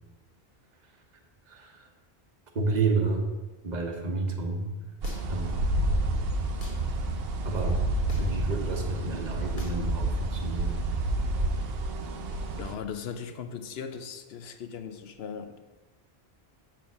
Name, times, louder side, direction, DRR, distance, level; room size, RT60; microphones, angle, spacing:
voice 1, 2.5-3.2 3.6-4.7 5.3-5.7 7.4-7.8 8.2-10.8, right 3 dB, 45° right, 3 dB, 1.1 m, -30 dB
sound 1, 5.0-5.5 6.6-6.8 8.1-8.4 9.6-9.8, left 2 dB, 50° left, 1.3 m, -46 dB
sound 2, 5.0-12.7, right 2 dB, 65° right, 0.9 m, -29 dB
voice 2, 12.6-15.6, left 7 dB, 75° left, 8 dB, 0.9 m, -38 dB
7.1 x 4.5 x 6.2 m, 1.2 s
omnidirectional pair, 1.1 m